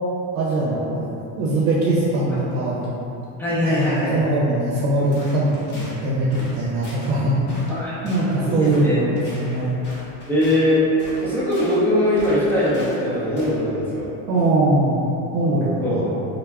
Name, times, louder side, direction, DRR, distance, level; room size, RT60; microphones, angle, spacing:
voice 1, 0.3-1.1 1.4-2.9 3.5-7.6 8.0-9.8 14.3-15.0 15.3-16.1, right 1 dB, 70° right, -7 dB, 0.7 m, -21 dB
voice 2, 3.4-4.2 7.7-7.9 8.4-9.0 10.3-10.8 11.2-14.1 15.8-16.1, left 1 dB, 5° left, -10 dB, 0.3 m, -21 dB
sound 1, 5.1-6.0 6.3-6.6 6.8-7.1 7.5-7.8 8.0-8.3 8.6-8.8 9.2-10.6 11.0-11.8 12.2-13.0 13.4-13.6, left 1 dB, 25° left, 0.7 m, -41 dB
2.3 x 2.1 x 3.3 m, 2.9 s
cardioid pair, 140°, 43 cm